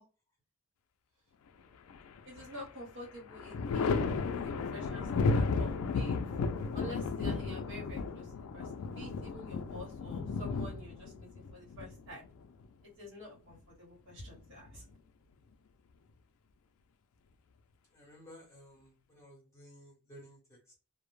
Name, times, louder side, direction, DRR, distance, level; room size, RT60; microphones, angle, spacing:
Thunder, 1.9-2.7 3.0-12.6 14.1-14.9, left 4 dB, 70° left, 0.3 m, -34 dB
voice 1, 2.2-4.0 4.3-6.2 6.7-12.2 13.0-14.8, left 1 dB, 60° right, -3 dB, 1.1 m, -48 dB
voice 2, 17.9-20.8, equal, 15° left, -1 dB, 0.9 m, -55 dB
2.1 x 2.0 x 3.0 m, 0.33 s
head